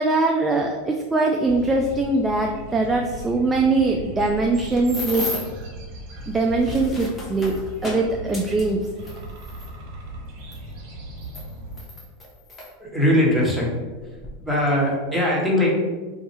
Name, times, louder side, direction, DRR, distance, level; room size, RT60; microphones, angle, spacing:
voice 1, 0.0-5.3 6.3-7.5 7.8-8.8, right 3 dB, 15° right, 1 dB, 0.3 m, -22 dB
sound 1, 1.4-11.9, right 1 dB, 55° right, 1.0 m, -38 dB
sound 2, 4.3-5.6 6.4-9.7 10.5-10.6 11.2-12.7 13.5-13.6 14.0-14.3, left 1 dB, 20° left, 0.9 m, -34 dB
voice 2, 12.8-13.7 14.4-15.7, left 1 dB, ahead, -6 dB, 1.1 m, -20 dB
2.7 x 2.3 x 4.1 m, 1.3 s
hypercardioid pair, 105°, 0 cm